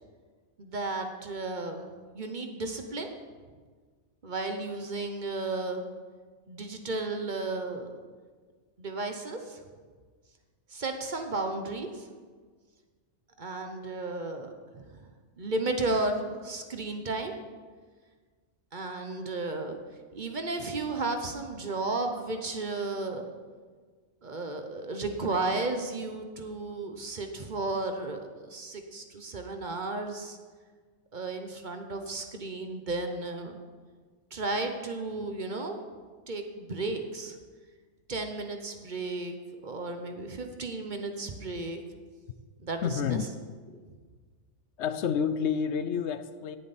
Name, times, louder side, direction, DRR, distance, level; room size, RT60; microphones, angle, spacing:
voice 1, 0.6-3.1 4.2-5.9 6.5-7.9 8.8-9.6 10.7-12.1 13.4-15.1 15.4-17.3 18.7-19.8 20.1-23.2 24.2-30.4 31.1-33.6 34.3-35.8 36.3-37.4 38.1-39.4 39.6-41.8 42.6-43.2, right 2 dB, 45° right, 5 dB, 1.0 m, -33 dB
voice 2, 42.8-43.3 44.8-46.6, left 7 dB, 75° left, 12 dB, 0.9 m, -29 dB
17.5 x 7.2 x 4.2 m, 1.5 s
omnidirectional pair, 1.2 m